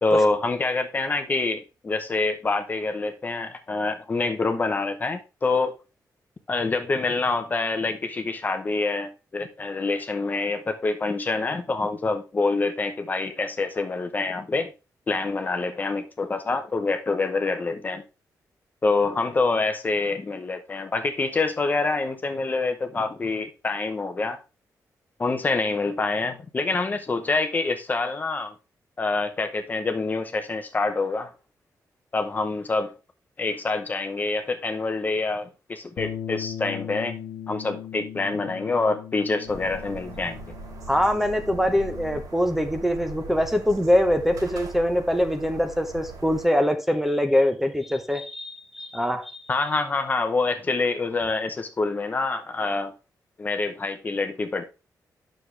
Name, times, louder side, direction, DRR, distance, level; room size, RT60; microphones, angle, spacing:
voice 1, 0.0-5.7 6.5-14.7 15.1-18.0 18.8-24.4 25.2-28.5 29.0-31.3 32.1-32.9 33.4-37.2 37.5-40.4 49.5-52.9 53.4-54.6, left 3 dB, 25° left, 0.8 m, -26 dB
Bass guitar, 36.0-42.2, left 9 dB, 80° left, 1.2 m, -38 dB
sound 1, 39.5-46.5, right 3 dB, 75° right, 4.4 m, -40 dB
voice 2, 40.9-49.5, equal, 5° right, 0.8 m, -23 dB
9.4 x 6.4 x 3.3 m
wide cardioid pair, 165°, 7 cm